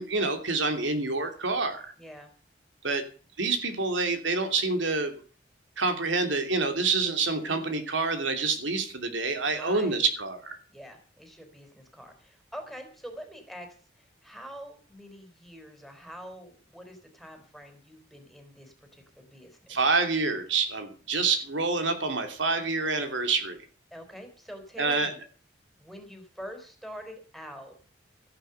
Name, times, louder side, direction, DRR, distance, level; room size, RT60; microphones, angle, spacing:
voice 1, 0.0-1.9 2.8-3.0 3.4-5.1 5.8-10.6 19.7-23.6 24.8-25.1, right 3 dB, 80° right, 6 dB, 2.9 m, -27 dB
voice 2, 2.0-2.3 9.5-10.1 10.7-13.7 13.9-19.8 23.9-25.2 25.8-27.8, equal, ahead, 5 dB, 3.7 m, -45 dB
14.0 x 11.5 x 6.8 m, 0.40 s
head